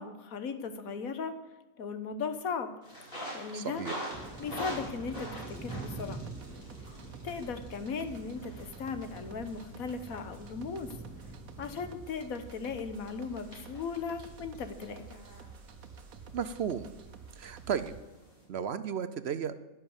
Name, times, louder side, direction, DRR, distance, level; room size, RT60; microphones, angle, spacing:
voice 1, 0.0-1.3 1.8-2.7 3.3-3.8 4.4-6.3 7.2-10.9 11.6-15.2, left 5 dB, 85° left, 9 dB, 1.6 m, -37 dB
sound 1, 2.8-18.4, equal, 40° left, 5.1 m, -47 dB
voice 2, 3.5-3.9 16.3-16.9 17.4-17.9 18.5-19.5, right 7 dB, 60° right, 12 dB, 0.8 m, -34 dB
sound 2, 4.1-12.0, right 2 dB, 5° left, 2.7 m, -46 dB
sound 3, 4.1-18.0, right 5 dB, 85° right, 1.3 m, -50 dB
11.0 x 10.5 x 7.2 m, 1.0 s
omnidirectional pair, 1.4 m